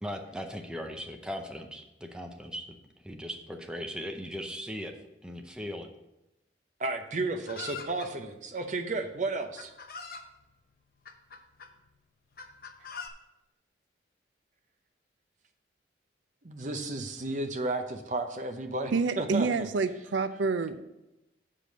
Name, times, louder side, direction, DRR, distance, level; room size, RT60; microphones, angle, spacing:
voice 1, 0.0-2.8 3.0-5.0 5.2-5.9, equal, 5° right, 3 dB, 0.6 m, -38 dB
voice 2, 6.8-9.7 16.4-19.7, right 2 dB, 40° right, 7 dB, 0.8 m, -33 dB
Chicken rooster, 7.5-8.1 9.0-9.1 9.6-10.3 11.1-11.7 12.4-13.1, left 5 dB, 50° left, 0.8 m, -42 dB
voice 3, 18.9-20.8, right 4 dB, 75° right, 11 dB, 0.5 m, -28 dB
7.5 x 5.1 x 6.4 m, 0.93 s
head